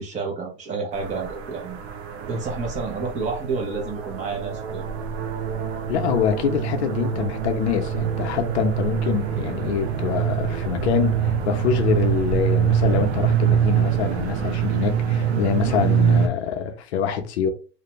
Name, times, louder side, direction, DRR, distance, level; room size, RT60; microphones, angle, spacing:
voice 1, 0.0-1.8 2.3-4.8, right 4 dB, 20° right, 0.7 m, -29 dB
sound 1, 0.9-16.3, right 8 dB, 85° right, 0.7 m, -24 dB
voice 2, 5.9-17.5, left 8 dB, 80° left, 0.6 m, -25 dB
2.5 x 2.1 x 2.9 m
supercardioid pair, 145°, 32 cm